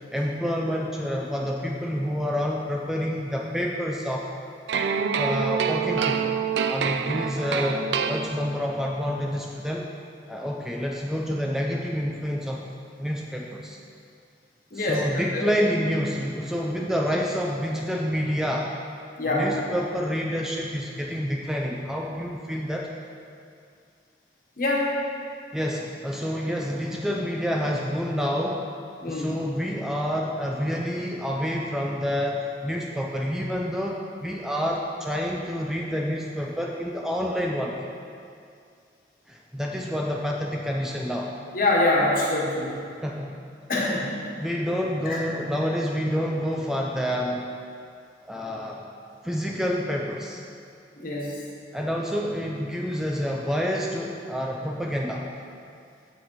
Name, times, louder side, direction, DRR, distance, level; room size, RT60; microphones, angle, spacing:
voice 1, 0.1-4.3 5.2-6.3 6.7-9.9 10.3-12.6 13.0-13.8 14.7-18.7 19.3-22.9 25.5-28.7 29.0-37.8 39.3-41.3 43.0-43.3 44.4-47.5 48.2-48.8 49.2-50.4 51.7-55.3, equal, 5° right, -1 dB, 0.4 m, -28 dB
sound 1, 4.7-8.8, right 6 dB, 80° right, 0.4 m, -26 dB
voice 2, 14.7-15.0 15.3-15.5 19.2-19.5 24.6-24.9 29.0-29.3 41.5-42.8 43.7-44.1 45.0-45.2 51.0-51.4, left 2 dB, 55° left, -4 dB, 1.5 m, -24 dB
7.2 x 6.3 x 4.7 m, 2.4 s
head